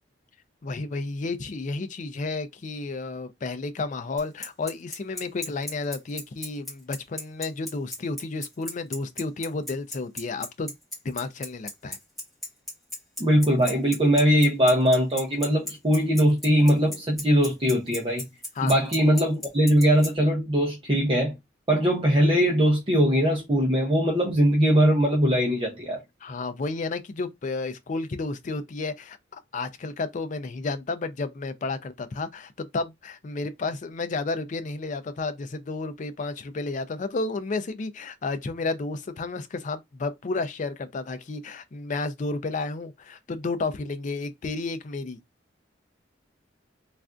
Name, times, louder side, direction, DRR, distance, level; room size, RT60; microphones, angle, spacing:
voice 1, 0.6-10.7 11.0-12.0 18.6-18.8 26.2-45.2, left 3 dB, 40° left, 0.4 m, -32 dB
Bicycle, 4.2-20.1, left 1 dB, ahead, 1.6 m, -34 dB
voice 2, 13.2-18.2 18.6-21.3 21.7-26.0, equal, 30° right, 0.6 m, -21 dB
3.3 x 2.4 x 2.4 m
head